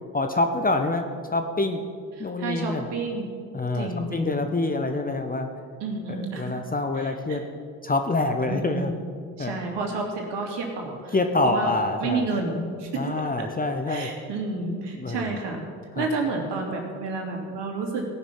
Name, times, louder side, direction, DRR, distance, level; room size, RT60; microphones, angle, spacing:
voice 1, 0.1-1.9 2.2-2.9 3.5-5.5 6.1-7.4 7.8-8.9 9.4-9.6 11.1-12.3 12.9-14.1 14.9-15.4 15.9-16.1, left 2 dB, 20° left, 6 dB, 0.9 m, -26 dB
voice 2, 2.4-3.3 3.7-4.4 5.8-6.5 7.0-7.4 8.5-9.0 9.4-11.1 11.4-11.7 12.0-13.0 13.9-15.6 15.9-18.1, right 3 dB, 60° right, 1 dB, 2.7 m, -30 dB
17.0 x 6.1 x 5.6 m, 2.2 s
hypercardioid pair, 65°, 46 cm